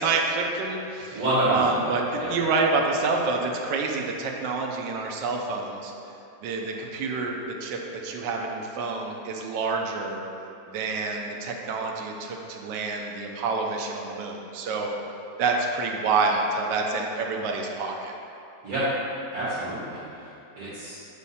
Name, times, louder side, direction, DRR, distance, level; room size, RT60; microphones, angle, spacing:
voice 1, 0.0-1.2 1.5-5.9 6.4-10.2 10.7-14.9 15.4-18.1, right 3 dB, 80° right, 1 dB, 1.3 m, -28 dB
voice 2, 1.1-1.8 2.2-2.4 18.6-18.9 19.3-20.2 20.6-21.0, right 1 dB, 55° right, -13 dB, 2.0 m, -27 dB
7.3 x 3.5 x 4.1 m, 2.7 s
omnidirectional pair, 1.9 m